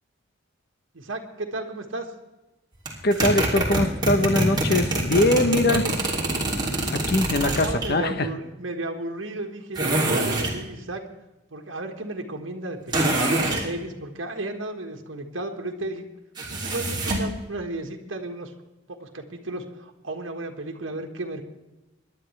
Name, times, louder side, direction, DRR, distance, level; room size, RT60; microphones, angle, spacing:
voice 1, 0.9-2.1 5.7-5.8 7.4-11.0 11.5-16.1 16.5-18.5 18.9-21.4, right 2 dB, 75° right, 3 dB, 1.6 m, -33 dB
sound 1, 2.9-7.9 9.8-10.6 12.9-13.7 16.4-17.3, right 2 dB, 20° right, 2.9 m, -25 dB
voice 2, 3.0-5.8 6.9-8.3, left 2 dB, 55° left, 10 dB, 1.0 m, -22 dB
25.5 x 11.0 x 3.3 m, 1.0 s
head